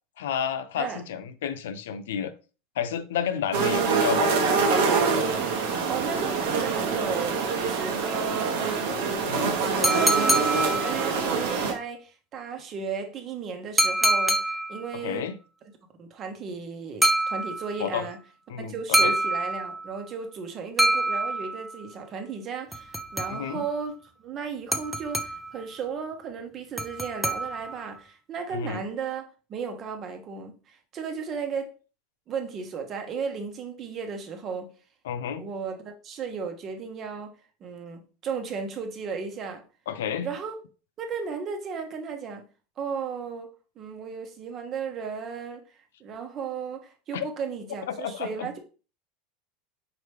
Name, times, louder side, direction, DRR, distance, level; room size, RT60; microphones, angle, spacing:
voice 1, 0.2-2.3 2.8-4.5 9.3-9.5 14.9-15.4 17.8-18.1 18.5-19.1 23.3-23.6 28.5-28.8 35.0-35.5 39.9-40.3 47.1-47.3 47.9-48.5, left 8 dB, 80° left, 0.4 m, -31 dB
sound 1, 3.5-11.7, right 4 dB, 75° right, 0.9 m, -25 dB
voice 2, 5.7-8.7 9.3-15.3 16.0-18.2 18.6-29.2 29.5-31.7 32.3-34.7 35.4-37.3 37.6-39.6 40.2-40.6 41.0-42.4 42.8-43.5 43.8-45.6 46.0-48.6, right 5 dB, 40° right, 1.0 m, -35 dB
sound 2, 9.8-11.3 13.8-14.9 17.0-17.9 18.9-20.0 20.8-21.8 22.7-23.7 24.7-25.6 26.8-27.9, right 1 dB, 5° right, 0.6 m, -26 dB
4.8 x 3.1 x 3.2 m
hypercardioid pair, 95°, 0 cm